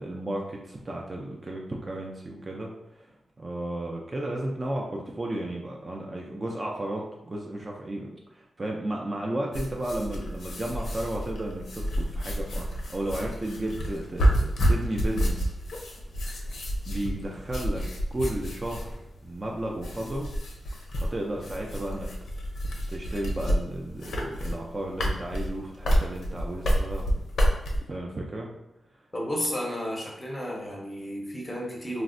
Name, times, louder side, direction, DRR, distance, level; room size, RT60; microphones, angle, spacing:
voice 1, 0.0-3.1 3.4-15.5 16.8-19.0 19.2-20.3 21.0-22.1 22.9-27.1 27.9-28.5, right 1 dB, 25° right, -1 dB, 0.3 m, -33 dB
sound 1, 9.5-27.8, equal, 90° left, 0.6 m, -29 dB
voice 2, 29.1-32.0, equal, 15° left, -2 dB, 0.6 m, -32 dB
4.1 x 2.0 x 2.5 m, 0.88 s
wide cardioid pair, 165°, 0 cm